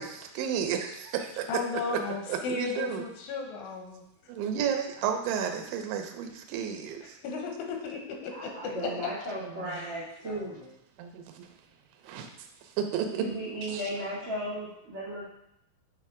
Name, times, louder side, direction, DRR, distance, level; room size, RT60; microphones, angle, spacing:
voice 1, 0.0-1.5 1.9-2.0 2.3-3.0 4.3-7.2 9.4-9.8 11.0-11.5 12.0-12.3 12.6-13.3 13.6-13.8, right 8 dB, 80° right, 5 dB, 2.9 m, -32 dB
voice 2, 1.5-4.0 7.0-8.9 9.7-10.7, left 4 dB, 80° left, 2 dB, 3.4 m, -36 dB
voice 3, 8.3-10.6 13.2-15.2, right 1 dB, 55° right, -8 dB, 1.5 m, -35 dB
9.0 x 3.4 x 4.8 m, 0.78 s
omnidirectional pair, 5.5 m